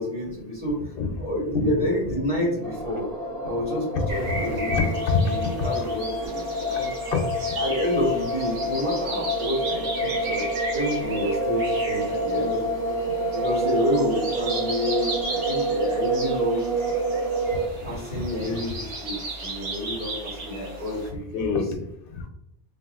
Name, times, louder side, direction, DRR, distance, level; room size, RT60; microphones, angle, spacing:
voice 1, 0.0-0.9 1.2-3.1 3.4-4.9 5.2-6.9 7.6-10.5 10.7-12.9 13.3-16.7 17.8-21.6, left 1 dB, 30° right, -7 dB, 1.1 m, -29 dB
voice 2, 1.0-1.3 1.5-1.9 3.9-5.2 5.6-6.0 6.2-6.3 7.1-7.2 17.8-18.6 21.3-22.3, left 4 dB, 60° left, 3 dB, 0.7 m, -28 dB
sound 1, 2.6-17.7, right 1 dB, 55° right, 0.9 m, -28 dB
sound 2, 4.1-21.1, right 2 dB, 85° right, 1.1 m, -35 dB
3.4 x 2.3 x 2.3 m, 0.81 s
omnidirectional pair, 1.2 m